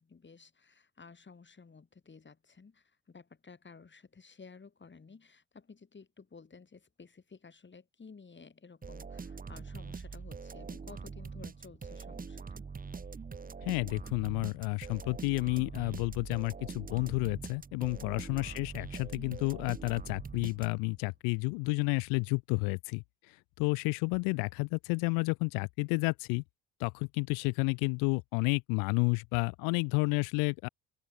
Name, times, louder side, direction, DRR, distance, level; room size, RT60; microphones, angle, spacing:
voice 1, 0.0-12.6 17.9-18.2, left 5 dB, 25° left, 5.1 m, -54 dB
sound 1, 8.8-21.0, right 5 dB, 20° right, 1.3 m, -43 dB
voice 2, 13.6-23.0 23.6-26.4 26.8-30.7, left 33 dB, 60° left, 0.6 m, -31 dB
open air
figure-of-eight pair, 50°, 40 cm